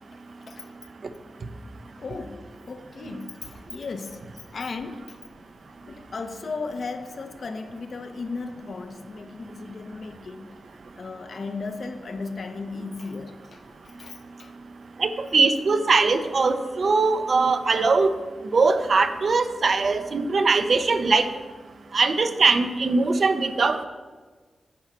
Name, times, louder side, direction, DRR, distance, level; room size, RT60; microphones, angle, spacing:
voice 1, 2.0-5.2 5.9-14.5, left 4 dB, 60° left, 0.7 m, -36 dB
voice 2, 15.0-18.1 18.5-21.3 21.9-23.9, right 4 dB, 55° right, 0.6 m, -21 dB
10.5 x 4.0 x 7.4 m
wide cardioid pair, 90°, 0 cm